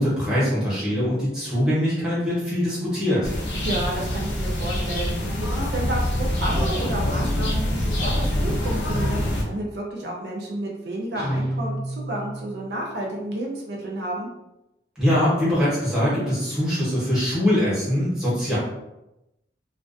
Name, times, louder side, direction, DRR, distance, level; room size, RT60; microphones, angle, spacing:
voice 1, 0.0-3.3 15.0-18.6, equal, 5° right, -10 dB, 0.9 m, -22 dB
sound 1, 3.2-9.4, left 1 dB, 80° left, 0.5 m, -25 dB
voice 2, 3.6-5.1 5.4-14.3, right 1 dB, 70° right, -2 dB, 0.5 m, -31 dB
Guitar, 11.1-12.8, right 1 dB, 20° left, 0.7 m, -30 dB
2.4 x 2.2 x 2.5 m, 0.92 s
head